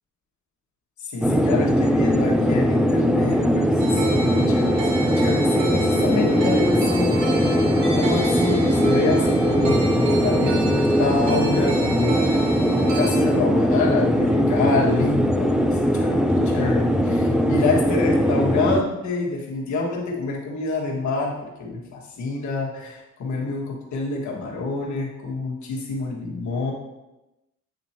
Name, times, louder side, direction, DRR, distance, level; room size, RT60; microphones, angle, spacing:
voice 1, 1.0-7.6 7.9-26.7, left 3 dB, 70° left, -2 dB, 1.6 m, -27 dB
sound 1, 1.2-18.8, equal, ahead, 0.4 m, -20 dB
sound 2, 3.8-13.2, right 4 dB, 70° right, 1.8 m, -32 dB
8.6 x 2.9 x 4.3 m, 0.99 s
cardioid pair, 90°, 30 cm